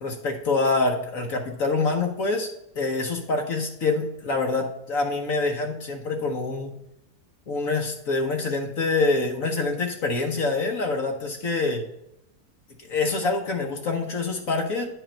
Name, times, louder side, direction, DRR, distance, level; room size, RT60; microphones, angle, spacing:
voice 1, 0.0-2.5 2.7-6.7 7.5-11.8 12.8-14.8, left 3 dB, 60° left, 2 dB, 1.3 m, -26 dB
10.0 x 5.1 x 4.4 m, 0.82 s
omnidirectional pair, 1.7 m